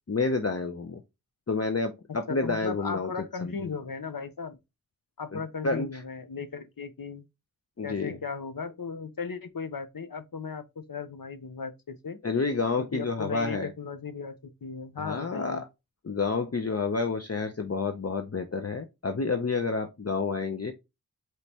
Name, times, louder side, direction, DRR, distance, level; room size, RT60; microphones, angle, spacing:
voice 1, 0.1-1.0 1.5-3.1 3.4-3.5 5.3-6.0 7.8-8.2 12.2-13.7 15.0-15.6 16.0-20.7, left 4 dB, 45° left, 0.7 m, -29 dB
voice 2, 2.3-4.6 5.2-7.2 7.8-12.2 12.8-15.6, left 5 dB, 70° left, 0.8 m, -36 dB
5.1 x 3.2 x 2.8 m
wide cardioid pair, 50°, 35 cm